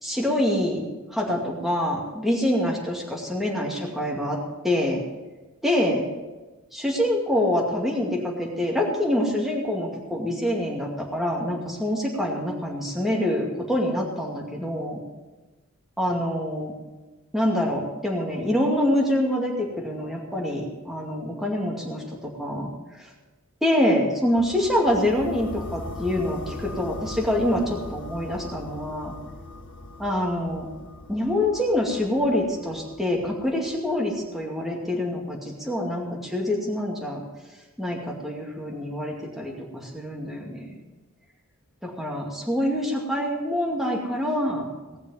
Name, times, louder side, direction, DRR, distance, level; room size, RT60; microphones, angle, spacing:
voice 1, 0.0-0.8 1.1-4.4 4.6-5.0 5.6-6.1 6.7-15.0 16.0-16.7 17.3-22.7 23.6-29.1 30.0-30.7 31.1-37.2 37.8-40.8 41.8-45.0, left 1 dB, ahead, -2 dB, 2.3 m, -26 dB
sound 1, 24.3-34.3, left 2 dB, 55° left, 1.2 m, -40 dB
19.0 x 6.8 x 7.5 m, 1.2 s
head